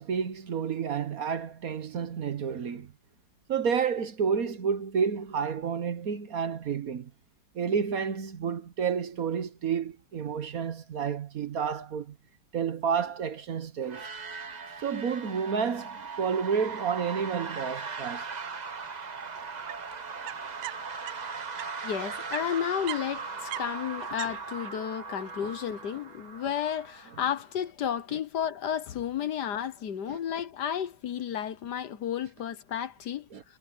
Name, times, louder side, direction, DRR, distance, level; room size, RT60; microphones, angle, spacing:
voice 1, 0.0-2.9 3.5-7.1 7.5-12.1 12.5-14.1 14.8-18.2 25.4-25.5 30.1-30.2 33.3-33.4, right 6 dB, 55° right, 1.5 m, -30 dB
sound 1, 13.8-27.5, right 4 dB, 35° right, 0.8 m, -39 dB
sound 2, 19.4-21.7 22.0-24.7, right 15 dB, 80° right, 1.2 m, -41 dB
voice 2, 21.8-33.3, left 9 dB, 70° left, 1.6 m, -32 dB
omnidirectional pair, 1.9 m